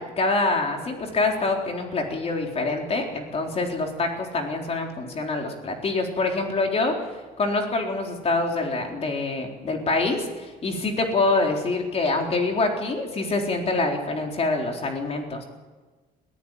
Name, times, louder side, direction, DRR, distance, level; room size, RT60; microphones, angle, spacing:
voice 1, 0.0-6.9 7.4-15.4, left 3 dB, 35° left, 2 dB, 4.1 m, -25 dB
21.5 x 15.0 x 9.2 m, 1.3 s
cardioid pair, 110°, 17 cm